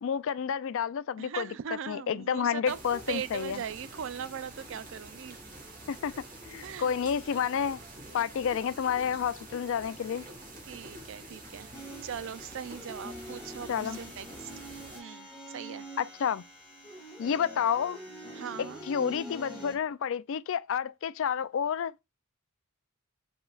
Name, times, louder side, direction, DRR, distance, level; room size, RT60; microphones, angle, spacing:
voice 1, 0.0-1.5 1.9-3.6 5.9-6.1 6.4-7.8 8.1-10.3 13.7-14.0 16.0-16.4 17.2-18.0 18.6-22.0, left 7 dB, 60° left, 0.3 m, -30 dB
voice 2, 1.2-2.8 3.1-5.4 6.6-7.0 10.7-11.7 12.0-14.5 14.9-15.3 15.5-15.8 18.3-18.8, right 8 dB, 60° right, 0.4 m, -39 dB
sound 1, 2.6-15.0, right 1 dB, 40° right, 1.5 m, -47 dB
sound 2, 11.7-19.7, equal, 5° right, 2.1 m, -45 dB
5.0 x 3.8 x 2.3 m
head